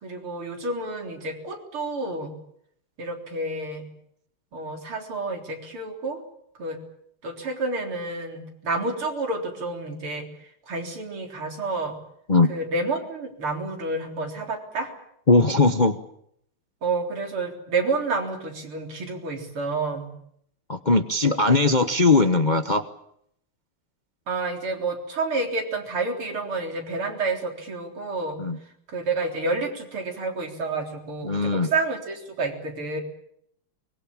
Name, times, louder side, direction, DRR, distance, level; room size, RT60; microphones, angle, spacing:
voice 1, 0.0-2.3 3.0-3.9 4.5-6.2 6.6-6.8 7.2-10.3 10.7-11.9 12.5-14.9 16.8-20.1 24.3-28.4 28.9-33.0, right 3 dB, 85° right, 3 dB, 4.7 m, -29 dB
voice 2, 15.3-16.0 20.7-22.8 28.4-28.6 31.2-31.7, left 3 dB, 35° left, 8 dB, 0.8 m, -19 dB
24.0 x 21.5 x 8.8 m, 0.70 s
omnidirectional pair, 2.3 m